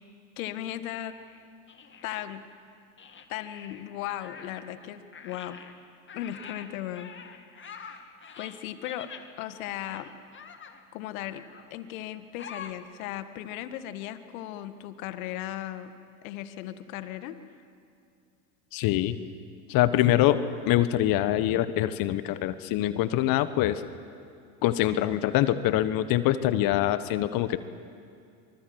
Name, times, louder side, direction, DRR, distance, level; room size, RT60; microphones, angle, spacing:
voice 1, 0.4-1.2 2.0-2.4 3.3-5.6 6.1-9.1 9.4-10.1 10.9-11.4 11.7-15.9 16.2-17.4, left 12 dB, 65° left, 11 dB, 1.7 m, -37 dB
sound 1, 0.9-2.4 3.0-4.9 5.1-9.3 9.8-10.8 11.2-11.7 12.4-12.7, left 6 dB, 25° left, 2.2 m, -46 dB
voice 2, 18.7-19.1 19.7-23.8 24.6-27.6, left 13 dB, 50° left, 13 dB, 1.2 m, -24 dB
24.5 x 24.5 x 8.0 m, 2.4 s
hypercardioid pair, 80°, 44 cm